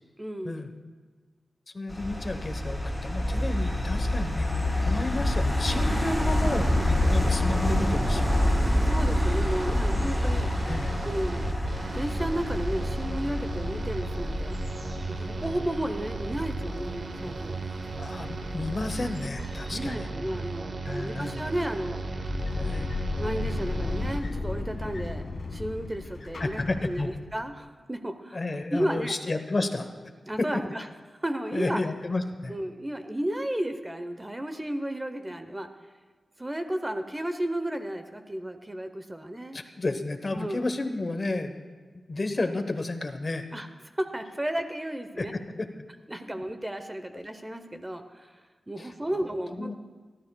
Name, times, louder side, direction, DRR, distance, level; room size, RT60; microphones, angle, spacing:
voice 1, 0.2-0.7 8.8-10.5 11.0-11.6 11.9-14.6 15.1-17.6 19.7-22.0 23.2-25.2 25.5-29.2 30.3-30.9 31.2-31.8 32.5-35.7 36.4-39.6 40.3-40.6 43.5-43.7 44.0-45.3 46.1-48.3 48.7-49.8, right 1 dB, 15° right, 7 dB, 0.7 m, -33 dB
voice 2, 1.7-8.3 10.7-11.0 18.0-20.1 20.8-21.5 22.6-22.9 26.4-27.1 28.3-29.9 31.5-32.5 39.5-41.6 42.1-43.4 45.2-45.7 46.3-46.4 48.8-48.9 49.5-49.8, left 2 dB, 35° left, 7 dB, 0.9 m, -32 dB
sound 1, 1.9-19.9, left 1 dB, 5° left, 2.9 m, -28 dB
sound 2, 5.6-24.2, right 3 dB, 50° right, 0.9 m, -35 dB
thin metal sliding door open sqeaking, 21.9-27.4, left 3 dB, 65° left, 1.5 m, -34 dB
28.0 x 12.0 x 2.2 m, 1.4 s
wide cardioid pair, 125°, 0 cm